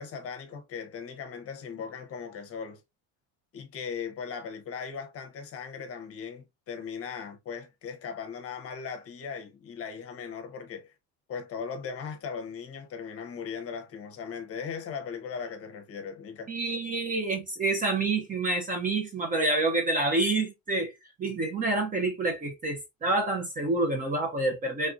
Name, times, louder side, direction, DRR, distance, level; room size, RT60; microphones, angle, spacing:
voice 1, 0.0-2.8 3.5-10.9 11.3-16.5, left 6 dB, 40° left, 0.8 m, -38 dB
voice 2, 16.5-20.9 21.2-24.9, right 2 dB, 25° right, 0.6 m, -28 dB
3.4 x 2.6 x 2.4 m
cardioid pair, 150°, 36 cm